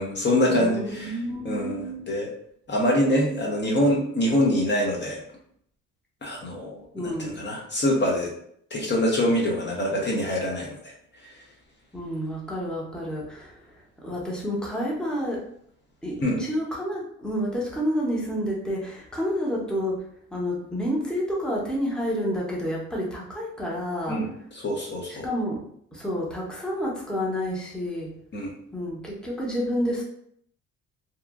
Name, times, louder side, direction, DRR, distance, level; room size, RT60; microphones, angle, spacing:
voice 1, 0.0-2.3 2.7-5.2 6.2-8.3 8.7-11.4 16.2-16.4 24.1-25.3 28.3-28.5, left 1 dB, 35° left, -2 dB, 0.7 m, -25 dB
voice 2, 0.6-2.0 6.9-7.5 11.9-13.5 14.0-15.4 16.0-20.0 20.3-24.2 25.2-25.6 25.9-28.1 28.7-30.0, equal, 5° left, -3 dB, 0.8 m, -29 dB
2.8 x 2.4 x 2.4 m, 0.67 s
cardioid pair, 90°, 30 cm